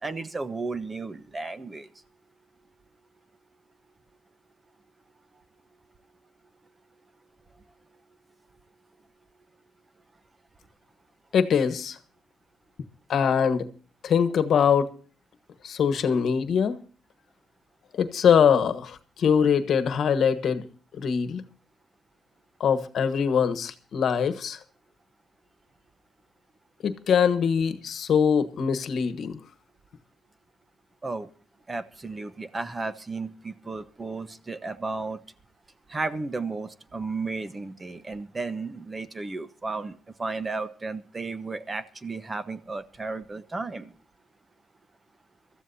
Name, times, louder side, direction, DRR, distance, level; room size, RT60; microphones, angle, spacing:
voice 1, 0.0-1.9 31.0-31.3 31.7-35.2 35.9-43.9, right 3 dB, 25° right, 1.0 m, -34 dB
voice 2, 11.3-12.0 13.1-13.7 14.0-14.9 15.6-16.7 17.9-20.7 21.0-21.4 22.6-24.6 26.8-29.4, left 7 dB, 60° left, 1.3 m, -23 dB
24.0 x 14.0 x 2.7 m
cardioid pair, 90°, 0 cm